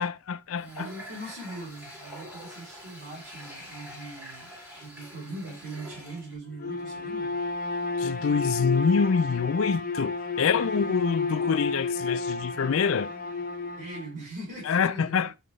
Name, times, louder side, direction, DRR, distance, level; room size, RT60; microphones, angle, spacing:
voice 1, 0.0-0.9 8.0-13.1 14.6-15.3, left 6 dB, 60° left, 0.4 m, -26 dB
Water tap faucet, 0.6-6.4, equal, 10° right, 1.8 m, -45 dB
voice 2, 0.6-7.3 10.7-11.0 13.8-15.3, right 1 dB, 55° right, 3.6 m, -41 dB
Bowed string instrument, 6.5-14.1, left 3 dB, 40° left, 0.8 m, -31 dB
7.0 x 4.4 x 3.1 m
head